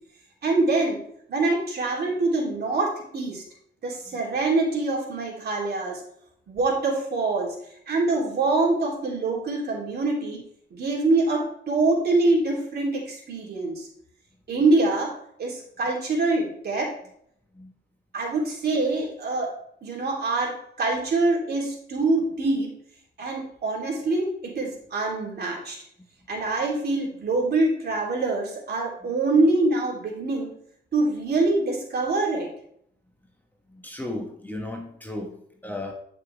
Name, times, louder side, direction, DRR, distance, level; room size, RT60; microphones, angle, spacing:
voice 1, 0.4-1.0 1.3-3.4 3.8-6.0 6.5-7.5 7.9-10.4 10.7-13.9 14.5-15.1 15.4-16.9 18.1-19.5 19.8-22.7 23.2-25.8 26.3-30.5 30.9-32.5, right 2 dB, 55° right, -2 dB, 3.3 m, -24 dB
voice 2, 33.7-35.4 35.6-35.9, left 1 dB, 10° left, 1 dB, 1.3 m, -34 dB
10.5 x 5.9 x 3.4 m, 0.68 s
cardioid pair, 90°, 20 cm